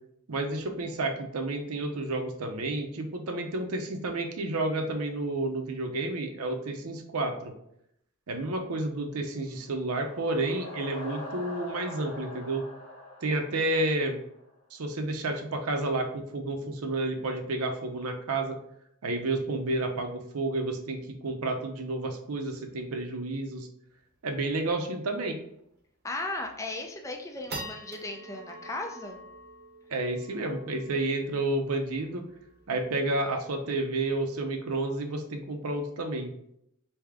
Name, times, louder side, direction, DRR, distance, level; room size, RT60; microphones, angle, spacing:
voice 1, 0.3-7.5 8.3-12.6 13.2-14.2 14.7-18.6 19.0-23.7 24.2-25.4 29.9-32.3 32.7-36.3, right 2 dB, 80° right, 5 dB, 0.6 m, -30 dB
sound 1, 9.5-14.4, left 1 dB, 80° left, 1.2 m, -43 dB
sound 2, 24.0-24.1 24.4-24.5 24.8-25.1 25.6-25.7 26.2-26.6 27.0-33.6, right 1 dB, 45° right, 0.8 m, -46 dB
voice 2, 26.0-29.2, left 2 dB, 15° left, 3 dB, 0.4 m, -36 dB
3.5 x 2.8 x 3.3 m, 0.75 s
head